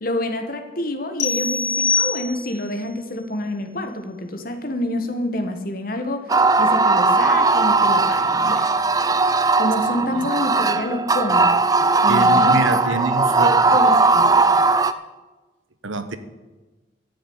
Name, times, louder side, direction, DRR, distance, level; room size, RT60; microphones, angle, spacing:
voice 1, 0.0-6.3 6.6-8.7 9.6-11.6 12.0-14.4, left 1 dB, 45° left, 7 dB, 1.5 m, -28 dB
sound 1, 1.2-2.7, left 4 dB, 80° left, 1.0 m, -23 dB
sound 2, 6.3-14.9, right 3 dB, 20° right, 0.5 m, -18 dB
voice 2, 11.8-13.7 14.5-14.7 15.8-16.2, right 3 dB, 80° right, 11 dB, 1.1 m, -26 dB
13.5 x 7.2 x 9.6 m, 1.2 s
head